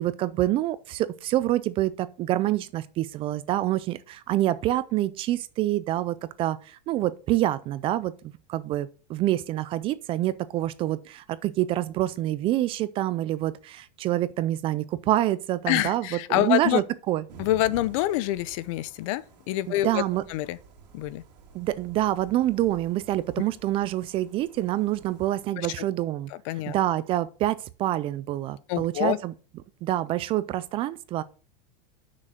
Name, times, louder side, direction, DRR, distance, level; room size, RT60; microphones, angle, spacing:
voice 1, 0.0-16.1 16.3-17.2 19.8-20.2 21.5-26.3 26.7-29.3 29.8-31.2, right 14 dB, 25° right, 0.4 m, -27 dB
voice 2, 15.7-16.8 17.4-20.0 20.3-20.6 20.9-21.2 25.6-25.9 26.3-26.7 28.7-29.2, left 15 dB, 50° left, 0.6 m, -26 dB
sound 1, 17.3-25.5, right 4 dB, 80° right, 2.2 m, -50 dB
6.5 x 6.3 x 5.8 m
supercardioid pair, 155°, 21 cm